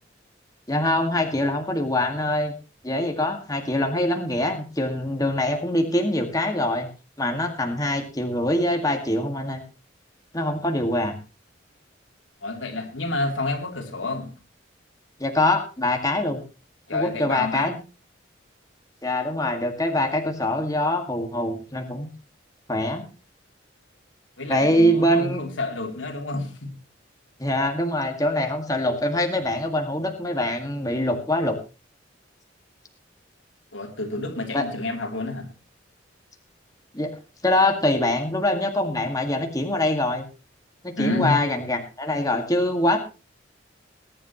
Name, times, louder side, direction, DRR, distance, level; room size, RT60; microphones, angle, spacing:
voice 1, 0.7-2.5 2.8-6.9 7.2-9.6 10.3-11.1 15.2-16.4 16.9-17.7 19.0-22.1 22.7-23.0 24.5-25.4 27.4-31.6 34.5-34.7 36.9-37.1 37.4-40.3 40.8-43.0, left 1 dB, 20° left, 2.0 m, -24 dB
voice 2, 12.4-14.3 16.9-17.7 24.4-26.7 33.7-35.5 41.0-41.4, left 2 dB, 85° left, 3.3 m, -29 dB
21.0 x 11.0 x 3.1 m
head